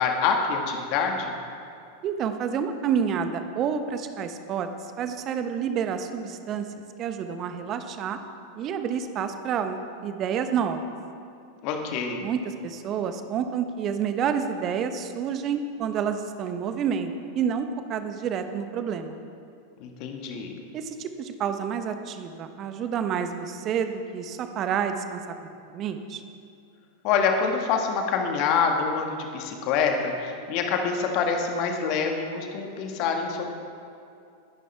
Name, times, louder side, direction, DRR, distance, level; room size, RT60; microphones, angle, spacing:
voice 1, 0.0-1.3 11.6-12.3 19.8-20.6 27.0-33.4, left 5 dB, 45° left, 3 dB, 1.7 m, -26 dB
voice 2, 2.0-4.7 5.0-6.6 7.0-8.2 8.6-10.8 12.2-19.2 20.7-25.2 25.7-26.2, right 7 dB, 35° right, 8 dB, 1.1 m, -29 dB
21.5 x 11.0 x 3.5 m, 2.5 s
figure-of-eight pair, 90°, 0 cm